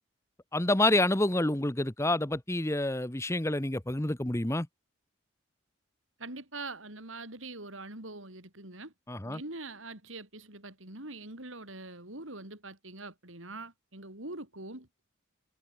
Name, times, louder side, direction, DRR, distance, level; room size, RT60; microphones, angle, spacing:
voice 1, 0.5-4.7 9.1-9.4, left 1 dB, 15° left, 1.1 m, -28 dB
voice 2, 6.2-8.9 9.2-14.9, right 2 dB, 80° right, 6.5 m, -43 dB
head